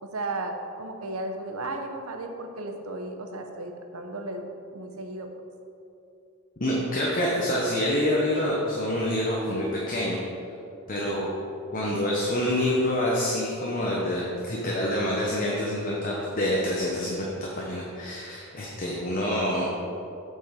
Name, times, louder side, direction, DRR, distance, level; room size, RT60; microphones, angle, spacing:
voice 1, 0.0-4.4 4.7-5.3, right 2 dB, 85° right, 4 dB, 0.8 m, -34 dB
voice 2, 6.6-10.2 10.9-11.3 11.7-19.7, left 1 dB, 40° left, -4 dB, 1.0 m, -27 dB
7.6 x 5.7 x 5.2 m, 2.7 s
head